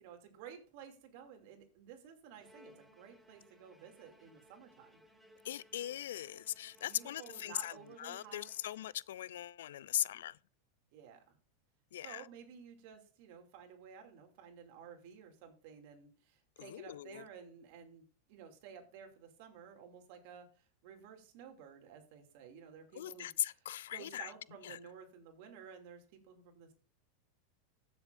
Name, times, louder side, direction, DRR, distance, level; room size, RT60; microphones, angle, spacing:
voice 1, 0.0-5.0 6.9-8.5 10.9-11.4 12.0-18.0 18.3-20.5 20.8-23.3 23.9-26.7, right 7 dB, 60° right, 2.5 m, -53 dB
Bowed string instrument, 2.4-9.4, left 1 dB, 5° right, 1.5 m, -64 dB
voice 2, 5.4-10.4 11.9-12.3 16.6-17.3 22.9-24.3 24.6-24.8, left 12 dB, 80° left, 0.3 m, -40 dB
15.0 x 7.0 x 2.6 m
supercardioid pair, 125°, 0 cm